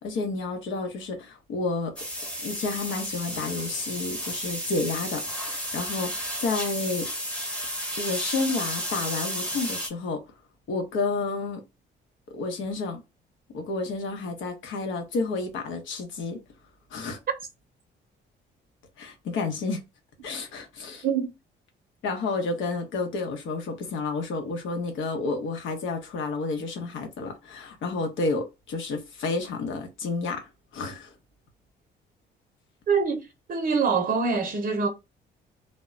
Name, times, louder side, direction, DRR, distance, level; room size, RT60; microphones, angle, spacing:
voice 1, 0.0-1.9 2.4-7.1 8.0-10.2 10.7-11.6 12.3-13.0 13.5-16.4 16.9-17.2 19.0-19.8 20.2-21.1 22.0-31.1, left 3 dB, 80° left, 0.8 m, -30 dB
sound 1, 2.0-9.9, equal, 5° left, 0.8 m, -32 dB
voice 2, 32.9-34.9, right 5 dB, 45° right, 0.6 m, -25 dB
2.1 x 2.1 x 3.6 m
cardioid pair, 90°, 20 cm